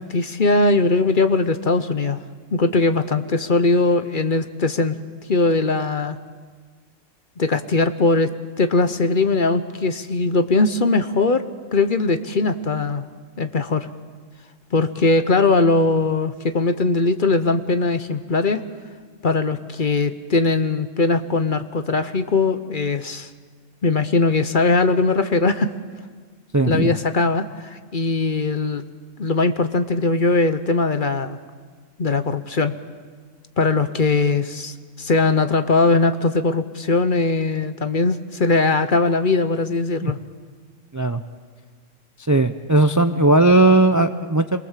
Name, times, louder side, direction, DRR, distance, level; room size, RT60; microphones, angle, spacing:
voice 1, 0.1-2.2 2.5-5.0 5.3-6.2 7.4-11.4 11.7-13.0 13.4-13.9 14.7-18.6 19.2-23.3 23.8-25.7 26.7-28.8 29.2-31.4 32.0-32.7 33.6-40.2, left 3 dB, 45° left, 10 dB, 1.0 m, -20 dB
voice 2, 26.5-27.0 40.0-40.1 40.9-41.2 42.3-44.6, right 2 dB, 20° right, 9 dB, 0.5 m, -17 dB
27.5 x 22.5 x 7.4 m, 1.5 s
omnidirectional pair, 1.3 m